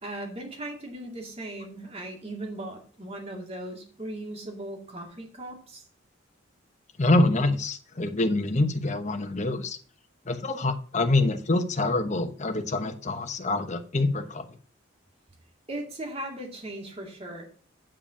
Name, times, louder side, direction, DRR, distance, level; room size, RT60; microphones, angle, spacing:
voice 1, 0.0-5.8 15.7-17.5, right 1 dB, 30° right, 2 dB, 2.2 m, -38 dB
voice 2, 7.0-9.8 10.3-14.4, left 2 dB, 35° left, 7 dB, 1.0 m, -25 dB
8.8 x 4.9 x 6.1 m, 0.43 s
head